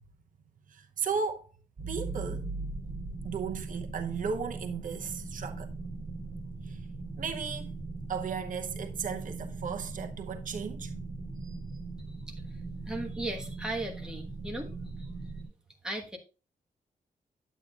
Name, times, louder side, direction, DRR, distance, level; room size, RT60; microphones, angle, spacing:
voice 1, 0.7-1.5 1.9-2.5 3.2-5.7 6.7-6.8 7.2-7.7 8.1-10.9 11.4-11.6, right 6 dB, 65° right, 0.8 m, -35 dB
sound 1, 1.8-15.5, right 3 dB, 25° right, 5.1 m, -39 dB
voice 2, 12.9-14.7 15.0-15.1 15.8-16.2, right 1 dB, 5° right, 1.3 m, -36 dB
10.0 x 8.3 x 2.4 m
wide cardioid pair, 165°, 14 cm